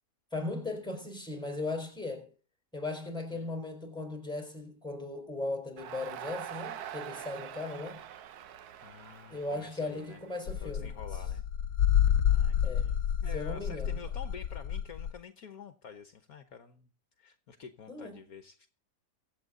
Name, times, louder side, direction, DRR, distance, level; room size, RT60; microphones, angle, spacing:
voice 1, 0.3-2.3 2.7-8.0 9.3-10.9 12.6-12.9 13.3-13.9 17.9-18.1, left 2 dB, ahead, 4.7 m, -37 dB
Crowd, 5.8-11.0, right 10 dB, 70° right, 1.3 m, -44 dB
voice 2, 8.8-10.2 10.6-11.4 12.3-16.9 17.2-18.7, left 6 dB, 60° left, 1.5 m, -48 dB
sound 1, 10.5-15.1, left 9 dB, 85° left, 1.4 m, -28 dB
24.0 x 8.1 x 3.8 m
omnidirectional pair, 1.8 m